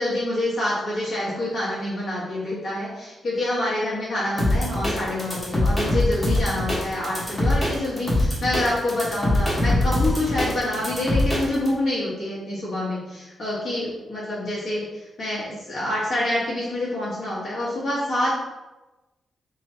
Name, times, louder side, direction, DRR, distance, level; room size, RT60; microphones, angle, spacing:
voice 1, 0.0-18.3, left 1 dB, 50° left, -8 dB, 1.3 m, -27 dB
sound 1, 4.4-11.7, left 1 dB, 10° left, 1.1 m, -23 dB
3.0 x 2.7 x 4.3 m, 1.1 s
wide cardioid pair, 165°, 0 cm